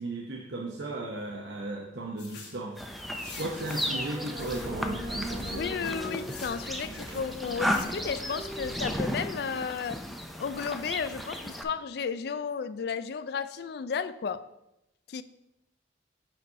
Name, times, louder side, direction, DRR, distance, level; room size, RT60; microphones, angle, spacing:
voice 1, 0.0-2.8 3.2-5.9, right 2 dB, 80° right, -1 dB, 0.8 m, -36 dB
sound 1, 2.2-2.6 3.2-4.0 4.3-4.7 5.3-6.6 7.0-7.9, left 6 dB, 75° left, 1.6 m, -48 dB
sound 2, 2.8-11.6, equal, ahead, 0.5 m, -35 dB
sound 3, 3.9-9.1, equal, 25° right, 1.2 m, -40 dB
voice 2, 5.5-10.0 10.4-14.4 15.1-15.2, left 6 dB, 60° left, 14 dB, 0.3 m, -33 dB
7.7 x 4.0 x 4.7 m, 0.88 s
head